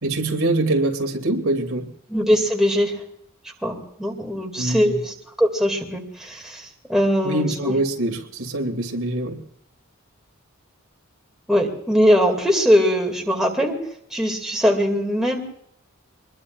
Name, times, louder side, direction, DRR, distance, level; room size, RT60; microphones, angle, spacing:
voice 1, 0.0-1.9 4.6-5.0 7.2-9.4, right 1 dB, 75° right, 4 dB, 2.4 m, -24 dB
voice 2, 2.1-3.0 3.6-7.7 11.5-13.8 14.1-15.4, equal, ahead, 1 dB, 2.3 m, -21 dB
25.0 x 21.0 x 2.5 m, 0.69 s
head